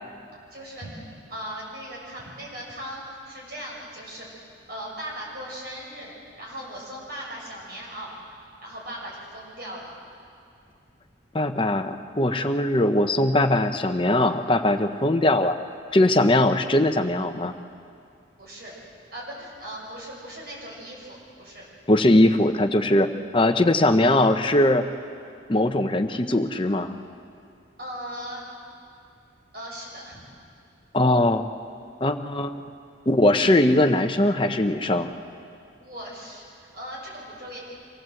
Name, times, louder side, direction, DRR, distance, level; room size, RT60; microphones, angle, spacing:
voice 1, 0.3-6.1 6.4-8.1 8.6-9.9 18.4-18.7 19.1-21.6 27.8-28.4 29.5-30.2 35.8-37.6, equal, 55° right, -4 dB, 6.6 m, -38 dB
voice 2, 11.3-15.6 15.9-17.5 21.9-24.9 25.5-26.9 30.9-31.4 32.0-32.6 33.1-35.1, left 1 dB, 25° left, 7 dB, 0.8 m, -20 dB
25.0 x 16.5 x 7.8 m, 2.4 s
head